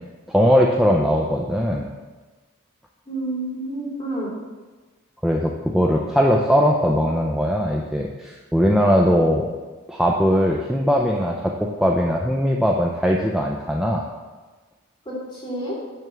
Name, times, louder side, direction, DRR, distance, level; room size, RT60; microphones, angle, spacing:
voice 1, 0.3-1.9 5.2-9.5 9.9-14.0, equal, ahead, -1 dB, 0.5 m, -20 dB
voice 2, 3.1-4.3 15.1-15.8, right 1 dB, 25° left, -6 dB, 2.6 m, -29 dB
9.1 x 3.6 x 6.7 m, 1.3 s
head